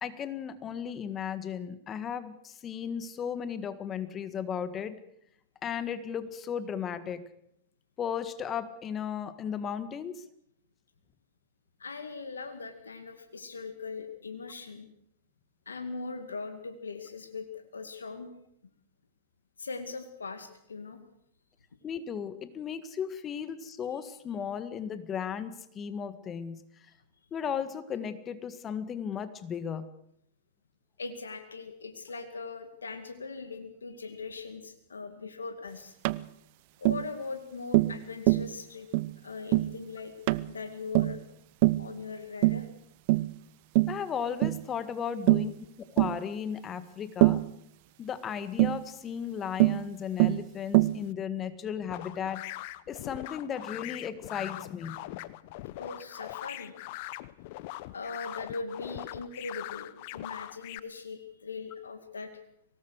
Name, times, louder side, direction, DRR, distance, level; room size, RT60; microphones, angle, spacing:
voice 1, 0.0-5.0 5.6-7.2 8.0-10.2 21.8-26.6 27.3-29.9 43.9-47.4 48.0-52.4 52.9-55.4, left 8 dB, 25° left, 12 dB, 1.7 m, -35 dB
voice 2, 11.8-14.9 15.7-18.3 19.6-21.0 31.0-35.9 36.8-38.9 39.2-40.1 40.5-41.2 41.8-42.7 55.8-56.7 57.9-62.4, left 4 dB, 85° left, 7 dB, 2.2 m, -40 dB
Tap, 36.0-36.2 36.9-37.1 37.7-38.0 38.3-38.5 38.9-39.1 39.5-39.7 40.3-40.5 40.9-41.2 41.6-41.9 42.4-42.7 43.1-43.3 43.8-44.0 44.4-44.6 45.3-45.5 46.0-46.2 47.2-47.5 48.6-48.8 49.6-49.8 50.2-50.4 50.7-51.0, right 20 dB, 50° right, 0.7 m, -23 dB
sound 1, 51.9-60.8, left 17 dB, 55° left, 0.9 m, -41 dB
23.5 x 19.0 x 6.5 m, 0.73 s
hypercardioid pair, 105°, 0 cm